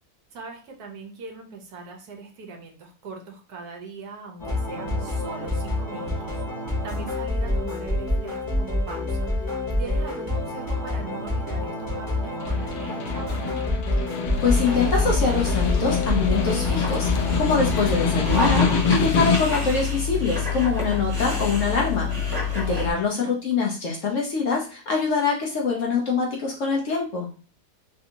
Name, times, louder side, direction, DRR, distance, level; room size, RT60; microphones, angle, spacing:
voice 1, 0.3-6.4 6.8-13.7 22.8-23.3, right 4 dB, 70° right, 2 dB, 1.2 m, -41 dB
sound 1, 4.4-18.7, left 1 dB, 15° left, 0.8 m, -27 dB
Snare drum, 12.2-19.7, left 5 dB, 90° left, 1.2 m, -26 dB
Dog, 14.3-22.9, left 6 dB, 35° right, 1.1 m, -27 dB
voice 2, 14.4-27.3, left 4 dB, 60° left, -1 dB, 0.9 m, -25 dB
3.3 x 2.6 x 2.7 m, 0.36 s
omnidirectional pair, 1.8 m